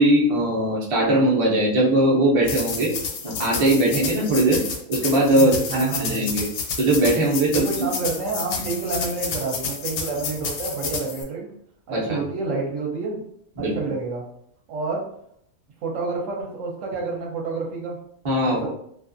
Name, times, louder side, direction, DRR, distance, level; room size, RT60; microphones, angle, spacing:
voice 1, 0.0-2.9 3.2-4.6 4.9-6.5 6.8-7.9 11.9-12.2 13.6-13.8 18.2-18.7, right 1 dB, 40° right, -4 dB, 0.4 m, -20 dB
sound 1, 2.4-11.2, left 5 dB, 80° left, 1.0 m, -30 dB
voice 2, 5.3-6.2 7.5-11.5 11.9-13.2 13.6-14.2 14.7-15.0 15.8-18.0 18.5-18.7, right 4 dB, 70° right, -1 dB, 1.0 m, -29 dB
2.5 x 2.4 x 2.5 m, 0.69 s
omnidirectional pair, 1.5 m